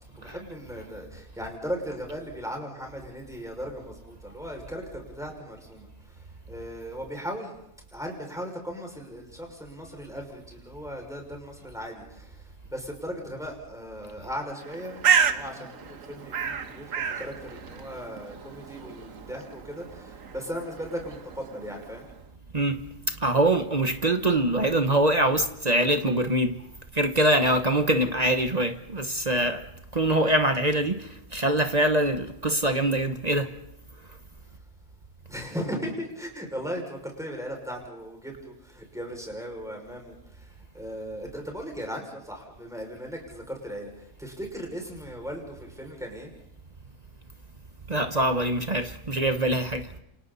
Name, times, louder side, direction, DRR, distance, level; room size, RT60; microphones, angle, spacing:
voice 1, 0.2-7.5 7.9-22.1 35.3-46.3 49.9-50.0, equal, ahead, 6.0 m, -37 dB
Bird, 14.6-22.2, right 7 dB, 70° right, 1.6 m, -31 dB
voice 2, 22.5-26.6 26.9-29.7 29.9-33.5 47.9-49.9, right 1 dB, 30° right, 1.1 m, -24 dB
29.5 x 28.0 x 4.2 m
omnidirectional pair, 1.4 m